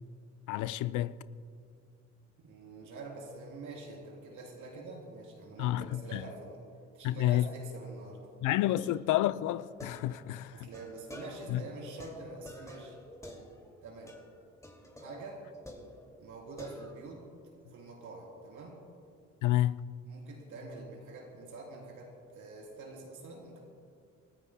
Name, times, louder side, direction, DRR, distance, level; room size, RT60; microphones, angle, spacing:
voice 1, 0.5-1.2 5.6-6.2 7.0-7.5 8.4-10.7 11.5-11.6 19.4-19.8, left 14 dB, 85° left, 0.5 m, -29 dB
voice 2, 2.4-6.6 6.9-8.2 8.6-8.9 10.5-13.0 13.8-14.1 15.0-15.4 16.2-17.2 17.7-18.8 20.1-23.6, right 3 dB, 80° right, 3.5 m, -46 dB
sound 1, 9.6-11.6 12.0-13.8 14.1-14.3 14.6-16.3 16.6-17.2, left 1 dB, 10° left, 2.3 m, -50 dB
28.5 x 14.0 x 2.2 m
cardioid pair, 90°, 30 cm